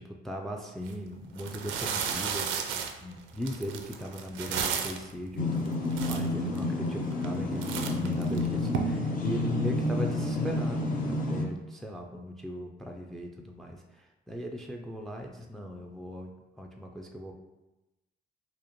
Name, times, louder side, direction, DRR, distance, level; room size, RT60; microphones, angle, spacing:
voice 1, 0.0-17.3, equal, ahead, 2 dB, 0.4 m, -38 dB
sound 1, 0.8-0.9 1.4-5.1 5.7-5.8 5.9-6.6 7.1-7.4 7.6-8.8, right 7 dB, 85° right, 0.4 m, -33 dB
sound 2, 5.4-11.4, left 2 dB, 45° left, 0.7 m, -30 dB
4.9 x 2.1 x 2.9 m, 1.0 s
cardioid pair, 90°, 20 cm